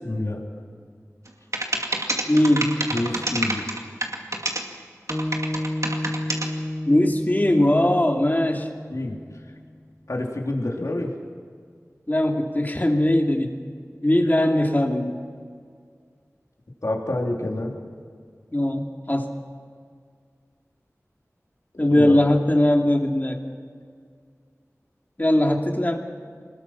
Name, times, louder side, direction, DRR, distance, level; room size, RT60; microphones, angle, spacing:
voice 1, 0.0-0.4 2.9-3.6 8.9-9.2 10.1-11.1 16.8-17.8 21.7-22.2, left 1 dB, 70° left, -1 dB, 3.5 m, -27 dB
sound 1, 1.3-1.4 1.5-4.6 5.1-6.5, right 2 dB, 70° right, 2.4 m, -26 dB
voice 2, 2.3-2.8 6.8-8.7 12.1-13.6 14.0-15.2 18.5-19.3 21.8-23.4 25.2-26.0, left 1 dB, 35° left, 2 dB, 2.6 m, -20 dB
sound 2, 5.1-9.5, left 1 dB, 10° left, 2.2 m, -31 dB
26.0 x 20.5 x 5.9 m, 2.1 s
wide cardioid pair, 45°, 6 cm